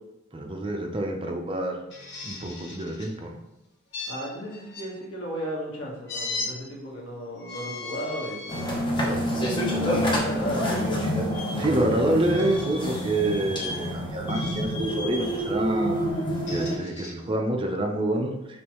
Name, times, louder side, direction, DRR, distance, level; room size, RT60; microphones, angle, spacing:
voice 1, 0.3-1.8 2.2-3.4 11.6-16.2 16.5-18.3, right 1 dB, 25° right, 2 dB, 0.5 m, -27 dB
sound 1, 1.9-3.1 3.9-4.9 6.1-6.5 7.4-8.7 9.3-9.5 11.3-11.5 12.3-12.9 13.5-13.9 14.3-14.8 16.2-17.1, left 3 dB, 65° left, 0.9 m, -37 dB
voice 2, 4.1-8.8 9.4-10.8, equal, 85° left, -4 dB, 1.3 m, -35 dB
sound 2, 8.5-16.8, equal, 25° left, 0.8 m, -28 dB
5.3 x 3.1 x 3.0 m, 1.0 s
head